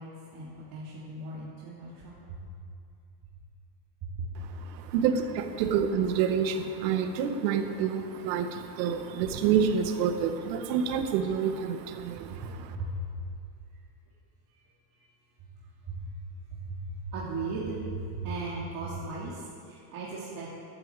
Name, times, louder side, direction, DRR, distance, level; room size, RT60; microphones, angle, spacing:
voice 1, 0.0-2.4 4.0-4.3 5.6-5.7 12.3-12.9 15.0-15.1 15.9-16.0 16.5-16.8 17.1-20.6, right 3 dB, 45° right, -7 dB, 3.1 m, -37 dB
voice 2, 4.7-12.7, right 7 dB, 90° right, 6 dB, 1.8 m, -28 dB
12.0 x 11.0 x 8.2 m, 2.4 s
cardioid pair, 150°, 50 cm